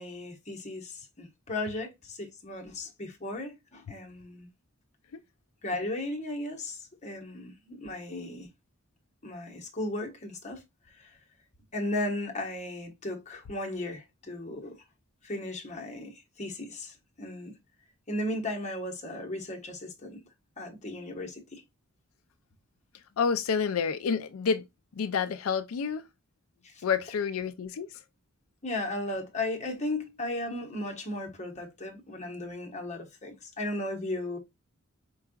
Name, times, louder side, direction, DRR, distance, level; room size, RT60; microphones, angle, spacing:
voice 1, 0.0-4.5 5.6-8.5 9.2-10.6 11.0-11.2 11.7-14.8 15.2-17.5 18.1-20.2 20.6-21.6 26.6-26.8 28.6-34.4, left 1 dB, 35° left, 1.3 m, -36 dB
voice 2, 23.2-24.7 25.0-26.1 26.8-28.0, left 6 dB, 80° left, 0.4 m, -29 dB
4.8 x 4.5 x 2.3 m
head